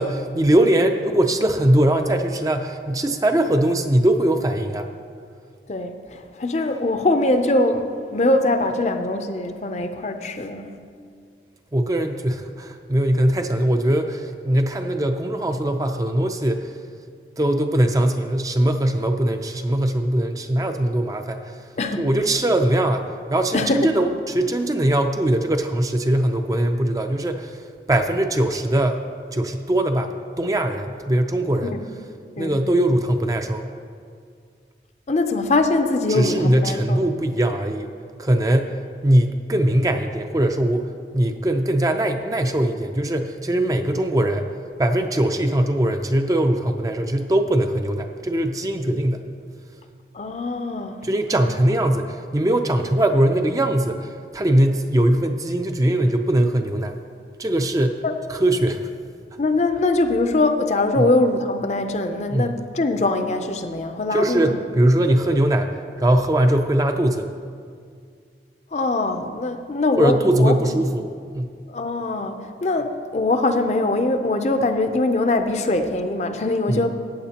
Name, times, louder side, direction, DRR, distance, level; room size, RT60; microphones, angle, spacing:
voice 1, 0.0-4.9 11.7-16.7 17.4-21.7 22.0-29.0 29.3-31.8 32.4-33.7 36.1-37.9 38.2-38.8 39.0-44.5 44.8-49.3 51.0-57.0 57.4-58.0 58.3-58.9 61.0-61.1 62.3-62.6 64.1-67.3 70.0-71.5 76.7-76.9, right 1 dB, 20° right, 6 dB, 0.4 m, -21 dB
voice 2, 5.7-10.8 21.8-22.1 23.5-23.9 31.7-31.8 32.4-32.6 35.1-37.0 50.1-51.1 58.0-58.1 59.4-64.6 68.7-70.6 71.7-76.9, left 2 dB, 40° left, 7 dB, 0.5 m, -22 dB
15.5 x 8.9 x 2.9 m, 2.2 s
head